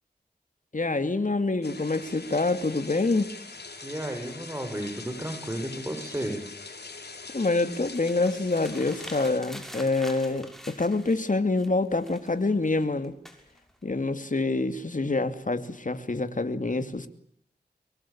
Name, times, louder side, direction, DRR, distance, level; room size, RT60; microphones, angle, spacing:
voice 1, 0.7-3.3 7.3-13.1 13.8-17.1, left 3 dB, 50° left, 10 dB, 2.7 m, -26 dB
sound 1, 1.6-9.4, left 4 dB, 75° left, 4.2 m, -43 dB
voice 2, 3.8-6.4, right 1 dB, 15° right, 4 dB, 6.9 m, -33 dB
sound 2, 7.7-11.3 11.6-13.8, equal, ahead, 6.3 m, -45 dB
24.0 x 23.5 x 8.8 m, 0.70 s
cardioid pair, 45°, 17 cm